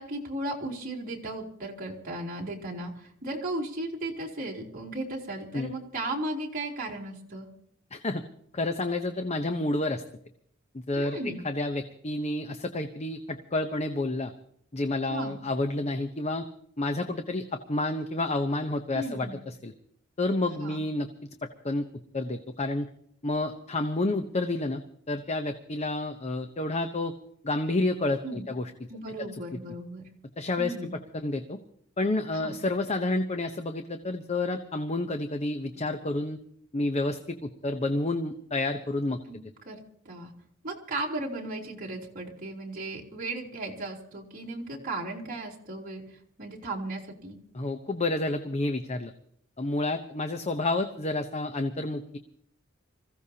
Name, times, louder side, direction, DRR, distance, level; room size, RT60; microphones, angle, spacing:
voice 1, 0.0-7.5 11.0-11.4 15.1-15.4 18.9-19.4 20.6-20.8 28.2-28.5 28.9-30.0 30.6-30.9 32.3-32.6 39.3-39.4 39.6-40.3 40.6-47.4, right 2 dB, 45° right, -2 dB, 3.4 m, -36 dB
voice 2, 7.9-8.2 8.5-10.0 10.7-11.2 11.4-14.3 14.7-16.4 16.8-19.7 20.2-21.1 21.6-21.8 22.1-22.9 23.2-27.1 27.4-28.7 30.4-30.7 31.1-31.6 32.0-36.4 36.7-39.2 47.5-49.1 49.6-52.2, left 2 dB, 35° left, 7 dB, 0.8 m, -29 dB
26.0 x 15.5 x 2.9 m, 0.67 s
head